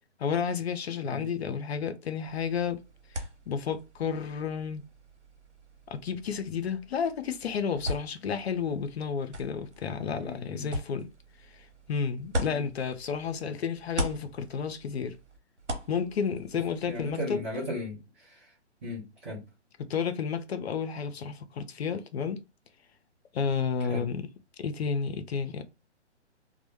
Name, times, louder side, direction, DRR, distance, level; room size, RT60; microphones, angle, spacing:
voice 1, 0.2-2.8 3.5-4.8 5.9-11.1 11.6-15.2 15.9-17.5 19.9-22.4 23.3-24.3 24.6-25.6, left 6 dB, 65° left, 0.5 m, -31 dB
sound 1, 2.2-13.4 13.7-17.1, equal, 85° right, 0.8 m, -40 dB
voice 2, 10.2-10.7 12.5-12.7 16.9-18.5 18.8-19.4 23.9-24.1, left 1 dB, 10° right, 0.4 m, -37 dB
2.1 x 2.0 x 2.9 m
figure-of-eight pair, 130°, 35 cm